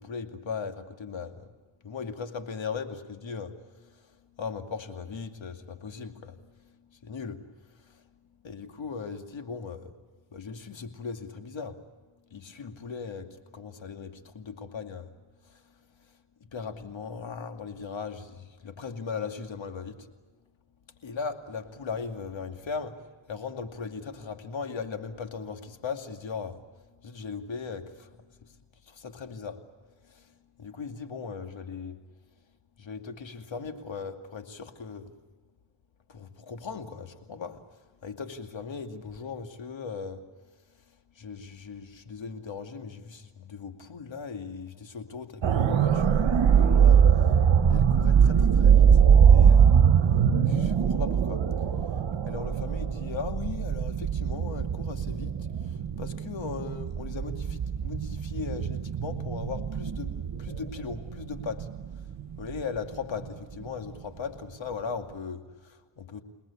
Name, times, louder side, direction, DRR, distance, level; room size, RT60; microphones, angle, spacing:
voice 1, 0.0-1.5 1.8-3.5 4.4-6.4 7.0-7.4 8.4-9.9 10.3-11.8 12.3-15.1 16.5-20.0 21.0-23.0 23.3-26.6 27.0-28.1 28.9-29.6 30.2-30.3 30.6-32.0 32.8-35.1 36.1-37.6 38.0-40.2 41.2-47.3 47.7-48.9 49.3-49.7 50.5-51.4 52.3-55.3 56.0-60.1 60.4-61.7 62.4-66.2, left 5 dB, 65° left, 6 dB, 2.5 m, -38 dB
sound 1, 45.4-63.3 63.7-63.8, right 7 dB, 65° right, 1.7 m, -22 dB
29.5 x 19.0 x 8.6 m, 1.3 s
cardioid pair, 55°, 48 cm